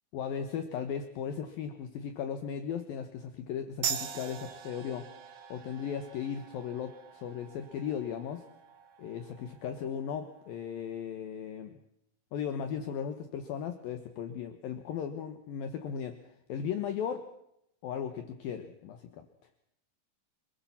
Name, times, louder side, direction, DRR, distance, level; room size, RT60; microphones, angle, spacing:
voice 1, 0.1-5.1 5.5-8.5 9.0-11.8 12.3-17.3 17.8-19.3, left 8 dB, 65° left, 8 dB, 2.5 m, -37 dB
sound 1, 3.8-10.9, right 8 dB, 60° right, 2.4 m, -42 dB
26.5 x 20.5 x 5.8 m, 0.79 s
omnidirectional pair, 5.5 m